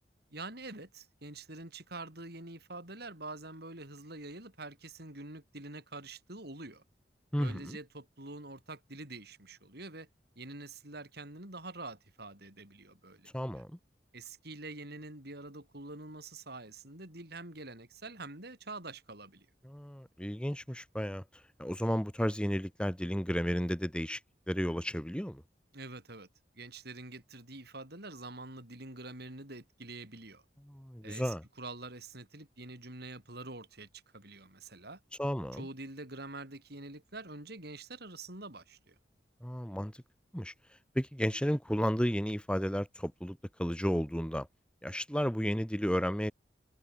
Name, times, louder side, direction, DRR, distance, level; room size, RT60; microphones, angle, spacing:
voice 1, 0.3-6.8 7.4-10.1 10.4-13.3 14.1-19.5 25.7-26.3 26.5-30.4 31.0-35.0 35.5-39.0, right 2 dB, 60° right, 7.8 m, -46 dB
voice 2, 7.3-7.8 13.3-13.8 19.6-21.2 21.6-24.2 24.5-25.4 30.6-31.4 35.2-35.7 39.4-40.0 40.3-40.5 40.9-44.5 44.8-46.3, equal, 5° left, 3.3 m, -33 dB
head